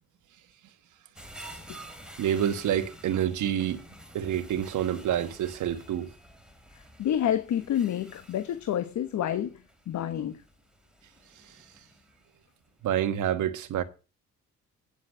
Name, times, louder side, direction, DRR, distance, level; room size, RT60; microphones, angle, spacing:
sound 1, 1.2-12.4 12.8-12.9, right 1 dB, 5° right, 3.1 m, -50 dB
voice 1, 2.2-3.8 4.1-6.1 12.8-13.8, right 10 dB, 80° right, 1.5 m, -27 dB
voice 2, 7.0-9.6 9.9-10.4, left 10 dB, 70° left, 1.2 m, -28 dB
9.9 x 7.3 x 6.2 m
cardioid pair, 90°, 30 cm